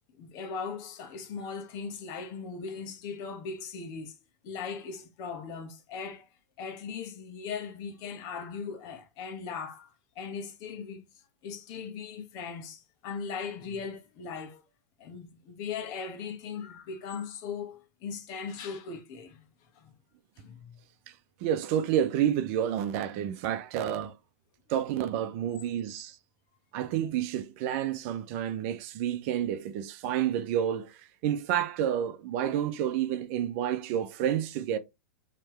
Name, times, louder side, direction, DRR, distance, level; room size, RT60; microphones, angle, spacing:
voice 1, 0.2-6.3 6.6-14.6 15.0-19.4 19.7-19.9 20.4-20.8, left 5 dB, 45° left, 1.4 m, -39 dB
voice 2, 21.4-24.1 24.7-26.2 26.7-34.8, right 10 dB, 50° right, 0.7 m, -29 dB
4.5 x 3.2 x 3.1 m
hypercardioid pair, 110°, 9 cm